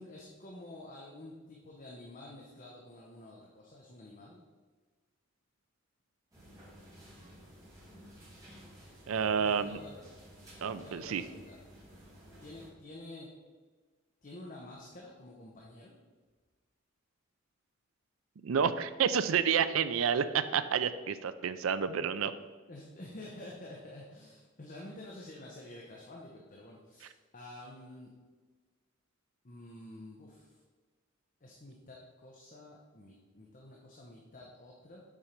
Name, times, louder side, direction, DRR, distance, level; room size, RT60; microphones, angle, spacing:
voice 1, 0.0-4.4 9.3-10.1 10.8-11.6 12.4-13.3 14.2-15.9 22.7-28.1 29.4-30.6 31.4-35.0, left 1 dB, 40° left, -2 dB, 0.8 m, -49 dB
sound 1, 6.3-12.7, equal, 15° right, 2.1 m, -54 dB
voice 2, 9.1-9.8 10.6-11.2 18.4-22.3, right 7 dB, 80° right, 12 dB, 0.4 m, -29 dB
7.3 x 4.3 x 5.2 m, 1.4 s
head